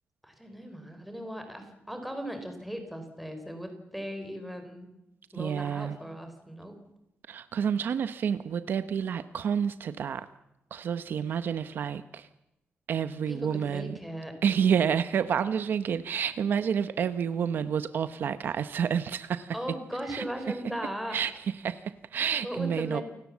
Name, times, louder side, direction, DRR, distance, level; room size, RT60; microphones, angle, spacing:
voice 1, 0.2-4.9 5.3-6.8 13.3-14.3 19.5-21.2 22.4-23.0, equal, ahead, 6 dB, 4.0 m, -38 dB
voice 2, 5.3-6.0 7.3-10.3 10.7-12.3 12.9-14.0 14.4-19.6 20.1-20.6 21.1-23.0, right 7 dB, 55° right, 12 dB, 0.8 m, -29 dB
29.0 x 18.0 x 7.3 m, 0.91 s
wide cardioid pair, 180°, 4 cm